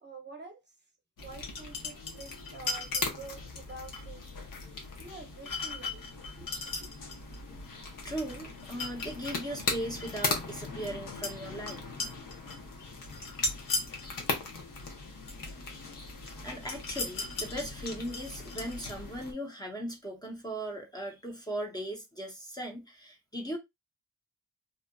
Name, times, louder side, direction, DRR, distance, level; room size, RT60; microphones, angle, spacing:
voice 1, 0.0-0.6 1.2-4.5 5.0-6.1 6.4-6.5 6.8-6.9, right 3 dB, 35° right, 0.7 m, -48 dB
sound 1, 1.2-19.3, left 3 dB, 75° left, 0.9 m, -37 dB
voice 2, 8.0-11.8 16.4-23.6, right 1 dB, 10° left, 0.6 m, -38 dB
2.7 x 2.5 x 2.2 m
wide cardioid pair, 105°, 33 cm